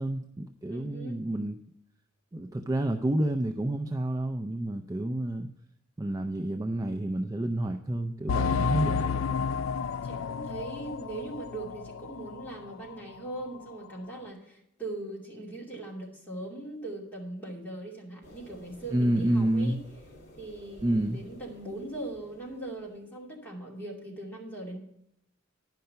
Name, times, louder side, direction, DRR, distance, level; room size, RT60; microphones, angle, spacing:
voice 1, 0.0-1.6 2.3-5.5 6.0-9.1 18.9-19.8 20.8-21.2, right 1 dB, 20° right, 5 dB, 0.4 m, -29 dB
voice 2, 0.7-1.2 8.2-8.6 9.0-9.4 10.0-19.8 20.4-24.8, right 2 dB, 10° left, -3 dB, 2.5 m, -40 dB
sound 1, 8.3-12.6 12.9-13.0 13.5-13.6, left 6 dB, 85° left, 0.3 m, -31 dB
sound 2, 18.2-23.1, equal, 60° left, 2.4 m, -53 dB
10.5 x 5.7 x 6.6 m, 0.79 s
head